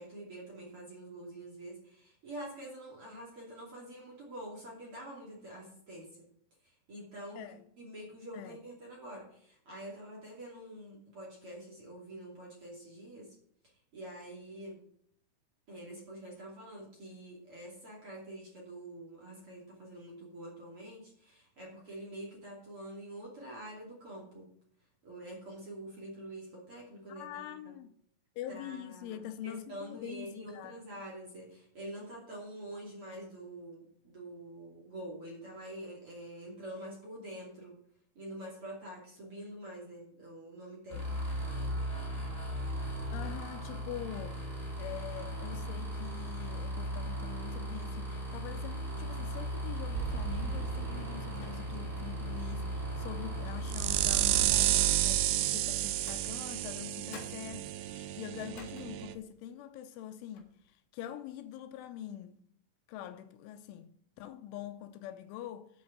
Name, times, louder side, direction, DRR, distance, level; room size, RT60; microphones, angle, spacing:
voice 1, 0.0-6.1 6.6-13.3 13.9-14.8 15.7-24.5 25.0-27.7 28.5-37.7 38.1-41.0 41.5-41.7, right 1 dB, 35° right, 2.9 m, -46 dB
voice 2, 27.1-27.9 28.4-30.8 43.1-44.4 44.8-60.5 60.9-62.4 62.9-65.7, left 11 dB, 80° left, 3.1 m, -44 dB
sound 1, 40.9-54.4, equal, 10° right, 3.1 m, -37 dB
sound 2, 49.9-59.1, right 14 dB, 85° right, 2.5 m, -32 dB
sound 3, 51.3-52.0 52.4-52.5 53.5-54.9 55.9-56.8 57.1-59.4 59.9-60.0 60.3-60.7, left 5 dB, 60° left, 2.4 m, -55 dB
8.8 x 5.8 x 7.9 m
omnidirectional pair, 5.6 m